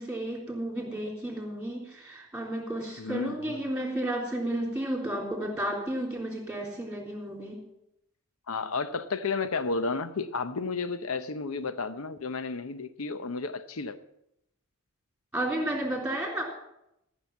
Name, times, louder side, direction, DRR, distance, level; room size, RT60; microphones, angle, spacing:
voice 1, 0.0-7.6 15.3-16.4, right 1 dB, 5° right, 3.5 m, -32 dB
voice 2, 3.0-3.6 8.5-14.0, left 4 dB, 70° left, 0.8 m, -32 dB
13.5 x 6.4 x 7.1 m
head